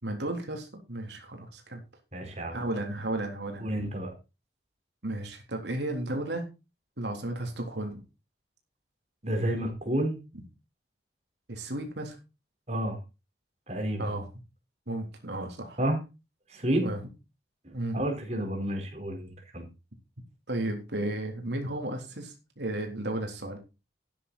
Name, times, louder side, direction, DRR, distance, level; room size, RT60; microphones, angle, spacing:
voice 1, 0.0-1.8 2.5-3.7 5.0-6.5 7.0-8.0 11.5-12.2 14.0-14.3 14.9-15.8 16.8-17.0 17.7-18.0 20.5-23.6, right 1 dB, 75° right, 3 dB, 3.6 m, -34 dB
voice 2, 2.1-2.6 3.6-4.1 9.2-10.2 12.7-13.0 13.7-14.1 15.8-16.0 16.5-16.9 17.6-19.6, right 1 dB, 35° right, 3 dB, 4.5 m, -30 dB
14.0 x 10.0 x 4.2 m, 0.29 s
head